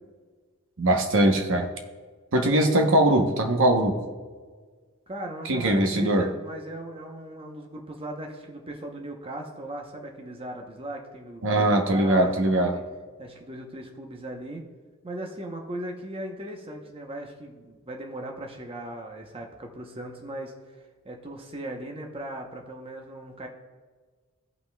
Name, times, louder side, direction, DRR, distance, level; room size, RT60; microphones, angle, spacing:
voice 1, 0.8-1.7 2.3-4.0 5.4-6.3 11.4-12.8, right 1 dB, 60° right, 4 dB, 0.9 m, -21 dB
voice 2, 2.4-2.8 5.1-12.8 13.2-14.6 15.0-23.5, right 1 dB, 25° right, 2 dB, 0.8 m, -38 dB
16.5 x 5.7 x 2.3 m, 1.5 s
head